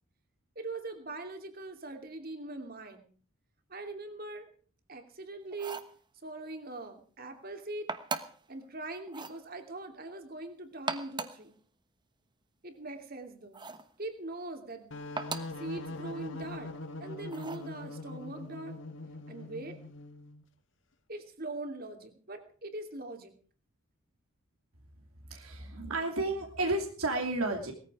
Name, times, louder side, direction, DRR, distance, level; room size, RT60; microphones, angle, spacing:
voice 1, 0.6-3.1 3.7-4.5 4.9-5.8 6.2-7.9 8.5-11.6 12.6-13.6 14.0-14.9 15.6-16.7 17.0-18.8 19.3-19.8 21.1-23.3, right 2 dB, 45° right, 6 dB, 2.8 m, -41 dB
sound 1, 5.5-6.0 7.9-8.5 9.1-9.4 10.7-11.5 13.5-13.9 15.2-15.6 17.3-17.7, right 4 dB, 20° right, 1.1 m, -38 dB
sound 2, 14.9-20.4, left 2 dB, 60° left, 1.7 m, -42 dB
voice 2, 25.3-27.7, right 2 dB, 85° right, 2 dB, 3.0 m, -32 dB
20.0 x 14.5 x 4.9 m, 0.43 s
head